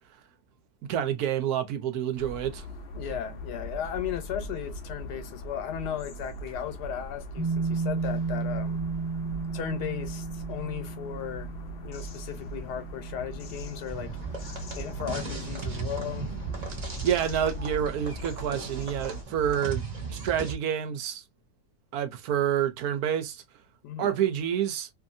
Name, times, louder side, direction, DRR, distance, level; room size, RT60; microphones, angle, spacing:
voice 1, 0.9-2.7 17.0-19.8 20.1-21.2 21.9-23.4 24.0-24.9, right 9 dB, 75° right, 1.1 m, -28 dB
sound 1, 2.2-19.2, right 1 dB, 60° left, 0.7 m, -40 dB
voice 2, 2.9-8.9 9.5-11.5 11.8-14.1 14.8-16.3 23.8-24.2, left 10 dB, 85° left, 1.3 m, -36 dB
sound 2, 7.4-16.8, right 4 dB, 15° right, 1.1 m, -35 dB
sound 3, 13.9-20.5, right 4 dB, 35° right, 0.8 m, -37 dB
2.7 x 2.6 x 2.5 m
omnidirectional pair, 1.7 m